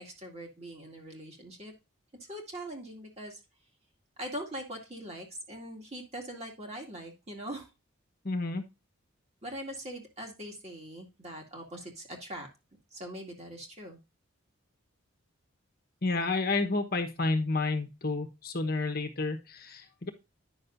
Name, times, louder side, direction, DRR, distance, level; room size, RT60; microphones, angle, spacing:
voice 1, 0.0-1.7 2.2-3.4 4.2-7.7 9.4-12.5 12.9-14.0, right 1 dB, 30° right, 1 dB, 2.3 m, -42 dB
voice 2, 8.2-8.6 16.0-20.1, left 3 dB, 45° left, 5 dB, 1.2 m, -30 dB
10.0 x 6.4 x 2.6 m, 0.26 s
head